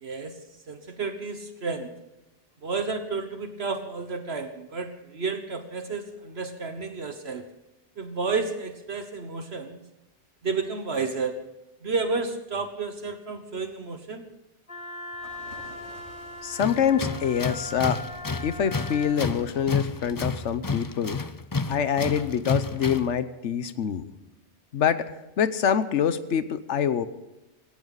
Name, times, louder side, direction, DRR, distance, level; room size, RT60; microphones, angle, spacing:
voice 1, 0.0-0.3 0.7-1.9 2.6-7.5 8.0-9.8 10.4-11.4 11.8-14.2, right 4 dB, 65° right, 7 dB, 1.5 m, -31 dB
Wind instrument woodwind instrument, 14.7-19.2, left 2 dB, 50° left, 2.1 m, -40 dB
sound 1, 15.2-20.2, left 1 dB, 70° left, 6.7 m, -50 dB
voice 2, 16.4-18.0 18.4-21.2 21.7-24.1 24.7-27.1, left 8 dB, 85° left, 12 dB, 1.2 m, -25 dB
Tools, 16.6-23.2, left 3 dB, 25° left, 0.4 m, -31 dB
19.0 x 17.0 x 4.0 m, 1.0 s
omnidirectional pair, 1.2 m